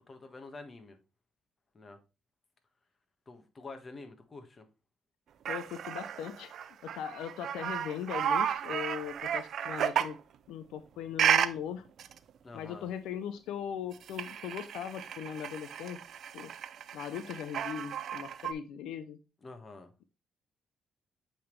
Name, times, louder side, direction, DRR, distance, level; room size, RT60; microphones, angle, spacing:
voice 1, 0.1-1.0 1.7-2.0 3.3-4.7 12.4-12.9 19.4-19.9, left 3 dB, 30° left, 1.5 m, -47 dB
voice 2, 5.5-6.5 6.8-10.2 10.5-11.9 12.5-16.0 16.3-16.5 16.9-19.2, left 9 dB, 90° left, 0.5 m, -39 dB
sound 1, 5.5-10.2 11.2-11.5 12.0-12.2 13.9-18.5, right 9 dB, 65° right, 0.5 m, -33 dB
7.8 x 3.8 x 3.2 m
cardioid pair, 90°, 0 cm